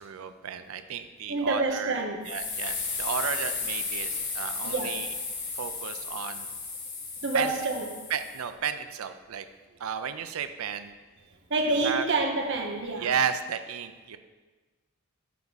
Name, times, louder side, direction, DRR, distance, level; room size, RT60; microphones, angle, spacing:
voice 1, 0.0-2.0 2.2-5.1 5.6-6.5 7.3-7.5 8.1-9.5 9.8-10.9 11.6-12.1 13.0-14.2, right 7 dB, 75° right, 10 dB, 0.4 m, -33 dB
voice 2, 1.3-2.2 4.6-4.9 7.2-7.9 11.5-13.1, right 2 dB, 55° right, 3 dB, 0.8 m, -27 dB
sound 1, 2.2-8.4, left 4 dB, 50° left, 1.3 m, -34 dB
9.4 x 3.5 x 4.0 m, 1.3 s
head